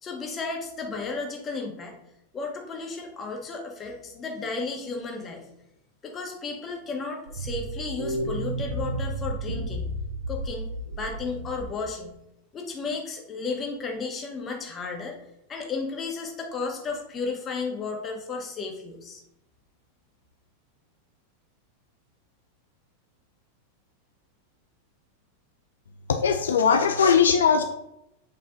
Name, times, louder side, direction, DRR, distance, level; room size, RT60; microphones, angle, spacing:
voice 1, 0.0-1.9 2.3-5.5 6.0-9.9 10.3-10.7 11.0-12.1 12.5-15.2 15.5-19.2, left 4 dB, 25° left, 1 dB, 1.8 m, -33 dB
sound 1, 7.3-11.9, right 1 dB, 70° right, 2.5 m, -32 dB
voice 2, 26.1-27.6, left 6 dB, 65° left, 6 dB, 0.6 m, -20 dB
8.2 x 5.5 x 4.0 m, 0.84 s
figure-of-eight pair, 90°, 0 cm